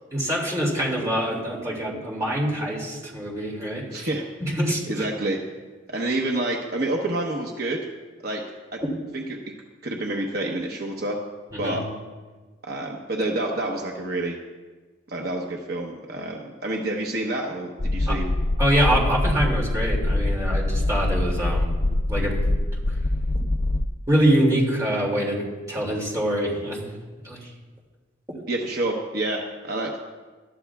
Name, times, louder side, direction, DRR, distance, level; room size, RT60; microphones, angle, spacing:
voice 1, 0.1-4.1 4.4-5.1 11.5-11.8 18.1-18.2 18.6-21.8 22.1-22.4 24.1-25.4 25.7-26.9 27.2-27.4, right 1 dB, 15° right, -3 dB, 2.4 m, -24 dB
voice 2, 3.9-4.2 4.9-5.4 5.9-7.9 8.2-8.4 8.7-8.8 9.1-9.4 9.8-11.2 11.6-11.8 12.6-14.4 15.1-18.3 28.5-30.0, right 2 dB, 55° right, 0 dB, 1.0 m, -28 dB
sound 1, 17.8-23.9, left 1 dB, 30° left, 0.4 m, -24 dB
20.5 x 13.0 x 2.4 m, 1.3 s
head